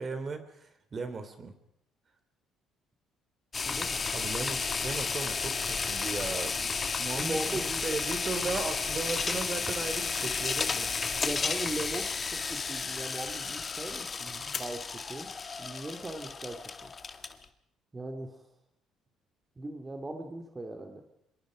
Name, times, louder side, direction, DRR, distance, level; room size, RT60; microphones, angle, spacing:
voice 1, 0.0-1.5 4.1-10.9, right 4 dB, 35° right, 9 dB, 3.4 m, -37 dB
sound 1, 3.5-17.4, left 5 dB, 35° left, 1.9 m, -33 dB
voice 2, 3.6-4.1 7.1-7.8 11.2-15.3 15.6-16.9 17.9-18.4 19.6-21.0, right 2 dB, 20° right, 4 dB, 2.8 m, -39 dB
25.5 x 22.0 x 5.2 m, 0.75 s
cardioid pair, 90°, 0 cm